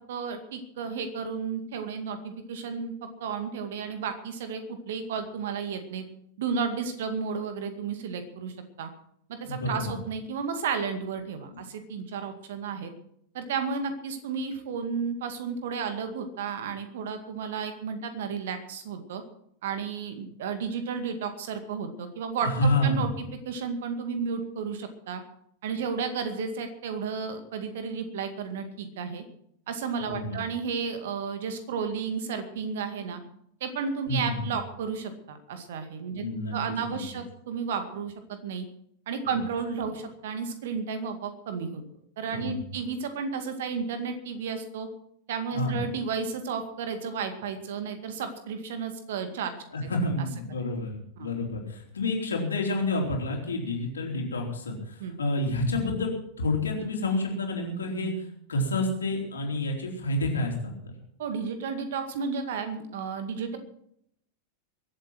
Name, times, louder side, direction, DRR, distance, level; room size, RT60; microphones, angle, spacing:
voice 1, 0.1-2.9 3.2-6.0 6.4-8.9 9.3-12.9 13.3-19.2 19.6-23.1 23.5-25.2 25.6-29.2 29.7-33.2 33.6-36.3 36.5-38.6 39.1-41.8 42.2-44.9 45.3-49.5 51.2-51.3 55.0-55.1 61.2-63.6, right 6 dB, 55° right, 8 dB, 2.1 m, -33 dB
voice 2, 9.5-9.9 11.5-11.6 22.4-23.1 30.0-30.4 34.1-34.3 36.1-36.5 36.9-37.0 39.2-39.4 42.3-42.6 45.5-45.8 49.7-56.1 56.4-60.9, left 1 dB, 70° left, 0 dB, 4.0 m, -29 dB
23.0 x 8.2 x 6.1 m, 0.72 s
figure-of-eight pair, 90°, 0 cm